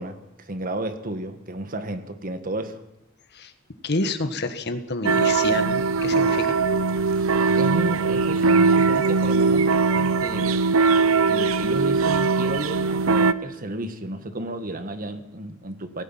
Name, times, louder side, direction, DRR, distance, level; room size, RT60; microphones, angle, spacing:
voice 1, 0.0-2.8 7.6-10.6 11.3-16.0, right 1 dB, 45° right, 9 dB, 1.6 m, -32 dB
voice 2, 3.8-6.6, left 2 dB, 55° left, 8 dB, 1.8 m, -28 dB
sound 1, 5.0-13.3, right 4 dB, 85° right, 0.8 m, -20 dB
18.0 x 16.0 x 9.0 m, 0.89 s
head